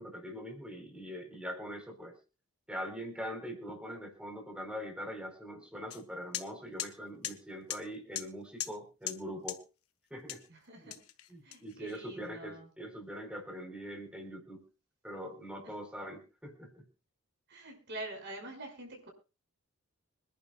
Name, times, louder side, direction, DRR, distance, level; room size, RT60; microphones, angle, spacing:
voice 1, 0.0-2.2 2.7-9.6 10.1-10.4 10.8-11.0 11.3-14.6 15.0-16.8, equal, 5° right, 4 dB, 4.2 m, -42 dB
sound 1, 5.9-6.0 6.3-6.5 6.8-6.9 7.2-7.4 7.7-7.8 8.1-8.3 8.6-8.8 9.1-9.2 9.5-9.6 10.3-10.5 10.9-11.9, left 11 dB, 85° left, 1.5 m, -38 dB
voice 2, 10.5-11.0 11.4-12.7 15.6-15.8 17.5-19.1, right 2 dB, 55° right, 2 dB, 5.9 m, -45 dB
26.0 x 11.0 x 2.4 m, 0.33 s
head